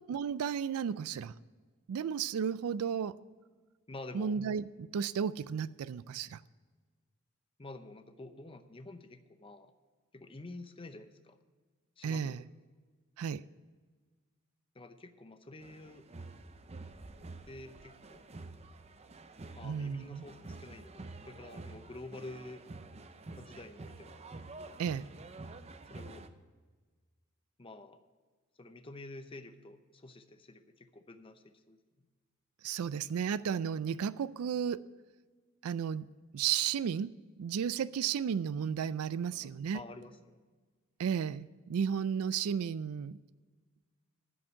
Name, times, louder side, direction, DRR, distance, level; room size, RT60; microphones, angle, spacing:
voice 1, 0.1-1.3 1.9-3.2 4.1-6.4 12.0-12.4 13.2-13.4 19.6-20.2 24.8-25.1 32.6-34.8 35.6-36.1 36.3-37.1 37.4-39.8 41.0-43.2, right 7 dB, 80° right, 0.3 m, -33 dB
voice 2, 3.9-4.4 7.6-9.7 10.1-11.4 12.0-12.5 14.7-16.1 17.5-18.2 19.6-22.6 23.4-24.2 25.9-26.3 27.6-28.0 28.6-31.8 39.1-40.4, left 2 dB, 25° left, 0.7 m, -49 dB
sound 1, 15.6-26.3, right 2 dB, 30° right, 0.6 m, -49 dB
10.5 x 6.2 x 8.1 m
head